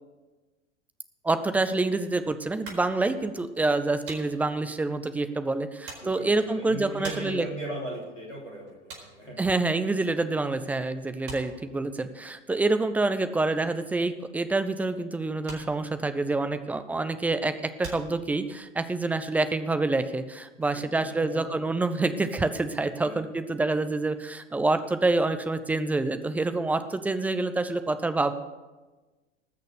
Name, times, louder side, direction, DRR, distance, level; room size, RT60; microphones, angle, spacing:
voice 1, 1.2-7.5 9.4-28.3, right 2 dB, 5° right, 10 dB, 0.3 m, -27 dB
sound 1, 2.6-10.5 10.8-18.8, right 3 dB, 40° right, 4.6 m, -47 dB
voice 2, 6.0-9.4 20.6-21.4 22.9-23.2, right 1 dB, 85° left, -2 dB, 3.6 m, -38 dB
19.0 x 6.5 x 6.5 m, 1.2 s
figure-of-eight pair, 85°, 36 cm